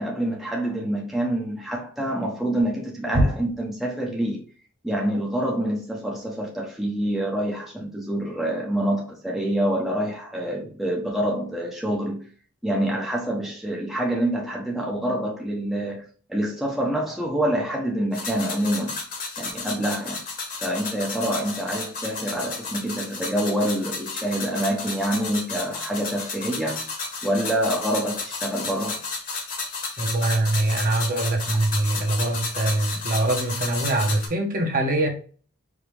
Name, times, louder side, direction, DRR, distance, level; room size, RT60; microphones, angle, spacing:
voice 1, 0.0-4.4 4.8-12.2 12.6-16.0 16.3-19.0 19.4-20.2 20.6-26.8 27.2-29.0 31.2-31.4, right 1 dB, ahead, 0.8 m, -26 dB
sound 1, 18.1-34.3, left 4 dB, 40° left, 1.3 m, -33 dB
voice 2, 30.0-35.1, right 2 dB, 40° right, 1.1 m, -23 dB
4.9 x 2.9 x 3.4 m
head